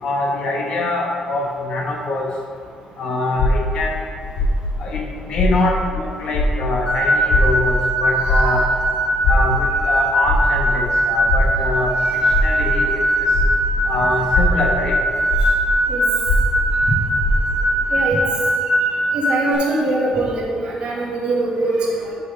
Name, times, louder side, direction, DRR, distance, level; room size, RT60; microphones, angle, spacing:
voice 1, 0.0-2.2 3.0-4.0 4.8-8.6 9.3-11.9 12.4-13.3 13.9-14.9, left 2 dB, 55° left, 0 dB, 1.1 m, -24 dB
sound 1, 3.4-6.0 6.3-13.9 14.2-17.8, left 1 dB, 80° left, 1.0 m, -21 dB
sound 2, 6.9-19.5, right 1 dB, 30° left, 1.8 m, -20 dB
voice 2, 8.2-8.6 15.9-16.0 16.9-17.0 17.9-18.2 19.1-22.1, right 2 dB, 55° right, -3 dB, 1.7 m, -22 dB
6.4 x 5.4 x 5.5 m, 2.2 s
cardioid pair, 145°, 2 cm